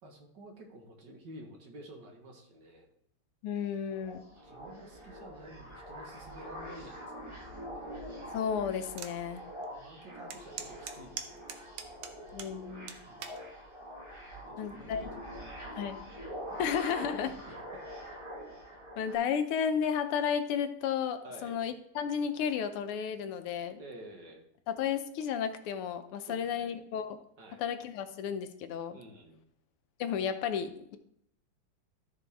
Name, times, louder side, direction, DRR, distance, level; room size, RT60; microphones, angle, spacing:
voice 1, 0.0-2.9 4.4-7.6 9.3-11.7 13.1-13.4 14.3-15.8 16.5-16.7 17.1-17.8 21.2-21.6 23.8-24.5 26.3-26.7 27.4-27.6 28.9-29.4, right 1 dB, 55° right, 2 dB, 1.9 m, -51 dB
voice 2, 3.4-4.2 8.3-9.4 12.3-13.0 14.6-15.1 15.8-16.0 16.6-17.3 19.0-23.8 24.7-27.2 27.6-29.0 30.0-31.0, left 7 dB, 85° left, 9 dB, 1.7 m, -33 dB
sound 1, 3.9-19.1, equal, 15° right, 1.4 m, -45 dB
sound 2, 9.0-9.2 9.6-9.7 10.3-12.5 12.9-13.4 14.1-14.4, right 7 dB, 80° right, 1.7 m, -41 dB
13.5 x 5.0 x 3.5 m, 0.72 s
omnidirectional pair, 2.4 m